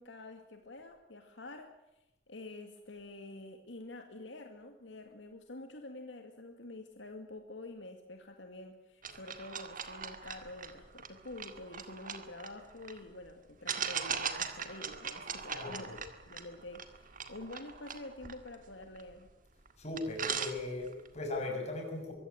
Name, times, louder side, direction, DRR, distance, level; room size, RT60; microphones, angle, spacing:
voice 1, 0.0-1.7 2.3-19.3, left 2 dB, 75° left, 5 dB, 2.1 m, -48 dB
sound 1, 9.0-13.0 13.7-19.3 19.7-19.8 20.0-21.1, right 7 dB, 45° right, 2.0 m, -40 dB
voice 2, 15.5-16.0 19.8-22.1, left 2 dB, 35° left, 2 dB, 6.6 m, -38 dB
24.0 x 15.5 x 9.5 m, 0.92 s
head